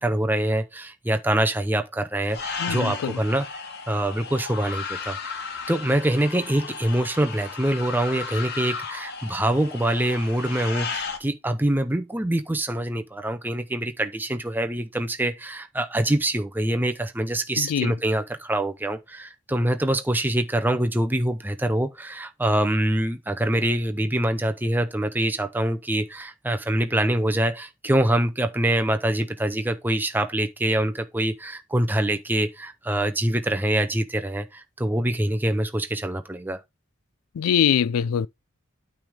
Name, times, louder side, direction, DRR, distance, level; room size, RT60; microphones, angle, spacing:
voice 1, 0.0-3.6 3.9-5.4 5.7-36.6, right 1 dB, 10° right, 0.6 m, -25 dB
sound 1, 2.3-11.2, left 5 dB, 50° left, 1.5 m, -34 dB
voice 2, 2.6-3.2 17.6-17.9 37.4-38.3, left 8 dB, 90° left, 0.4 m, -23 dB
9.2 x 3.5 x 4.9 m
head